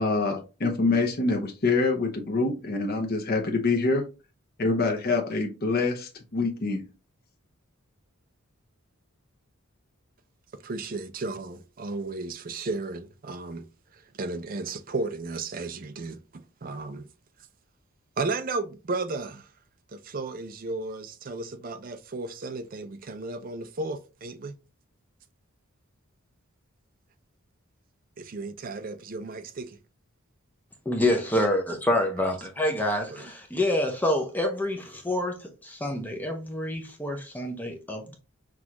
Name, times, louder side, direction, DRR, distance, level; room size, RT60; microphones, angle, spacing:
voice 1, 0.0-4.0 4.6-6.8, left 3 dB, 45° left, 0.7 m, -25 dB
voice 2, 10.6-13.7 13.9-17.1 18.2-19.5 19.9-24.5 28.2-29.8 33.1-33.3, right 3 dB, 40° right, 0.5 m, -34 dB
voice 3, 30.9-38.2, left 1 dB, 10° left, 0.6 m, -27 dB
6.0 x 2.4 x 2.9 m
head